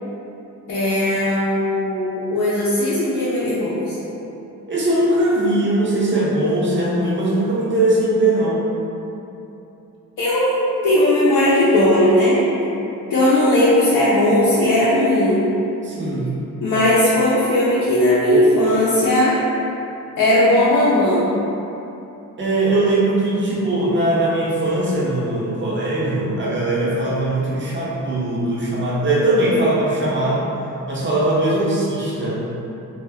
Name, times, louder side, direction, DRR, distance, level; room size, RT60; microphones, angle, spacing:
voice 1, 0.7-4.0 10.2-12.5 13.1-15.4 16.6-19.4 20.2-21.3, left 1 dB, 70° left, -9 dB, 0.6 m, -17 dB
voice 2, 4.7-8.7 15.8-16.3 22.4-30.4 30.9-32.4, right 1 dB, 35° right, -6 dB, 0.6 m, -20 dB
2.2 x 2.1 x 3.4 m, 2.9 s
cardioid pair, 95°, 33 cm